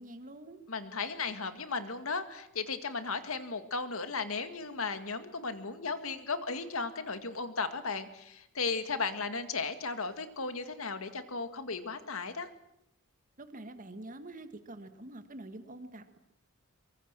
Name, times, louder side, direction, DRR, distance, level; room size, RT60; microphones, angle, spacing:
voice 1, 0.0-0.6 13.4-16.2, right 1 dB, 40° right, 8 dB, 1.9 m, -46 dB
voice 2, 0.7-12.5, left 4 dB, 70° left, 9 dB, 2.1 m, -35 dB
23.5 x 23.0 x 7.6 m, 0.83 s
head